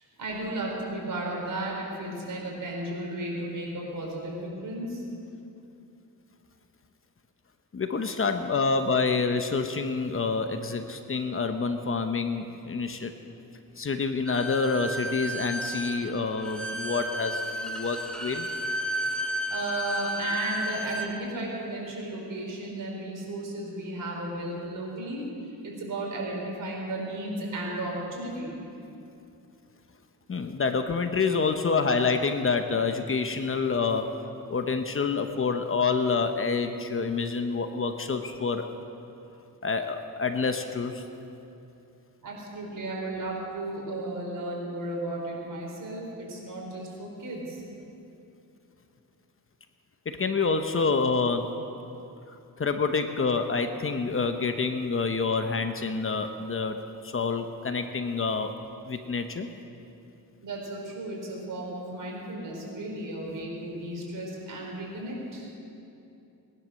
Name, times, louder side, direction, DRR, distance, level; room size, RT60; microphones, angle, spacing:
voice 1, 0.2-5.0 19.5-25.3 25.6-28.5 42.2-47.6 60.4-65.5, right 1 dB, 60° right, -2 dB, 4.6 m, -34 dB
voice 2, 7.7-13.1 13.8-18.5 30.3-34.1 34.5-38.7 39.6-41.0 50.1-51.5 52.6-56.8 57.0-58.5 58.8-59.5, left 4 dB, 35° left, 7 dB, 0.9 m, -27 dB
Bowed string instrument, 14.2-21.1, equal, ahead, 1.4 m, -33 dB
19.5 x 11.0 x 6.5 m, 2.8 s
cardioid pair, 110°, 36 cm